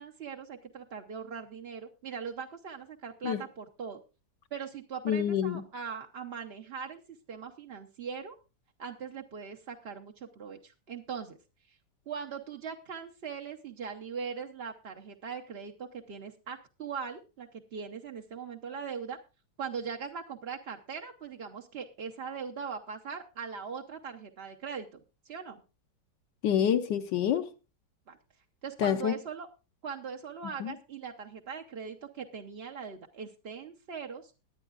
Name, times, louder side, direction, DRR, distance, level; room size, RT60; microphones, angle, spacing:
voice 1, 0.0-4.0 4.5-7.0 7.3-8.4 8.8-11.4 11.7-11.8 12.1-19.2 19.6-25.6 28.1-28.2 28.6-29.5 29.8-34.3, right 6 dB, 50° right, 0.7 m, -40 dB
voice 2, 5.1-5.6 26.4-27.5 28.8-29.1 30.6-30.7, left 9 dB, 75° left, 1.4 m, -27 dB
21.0 x 8.9 x 2.4 m
omnidirectional pair, 2.0 m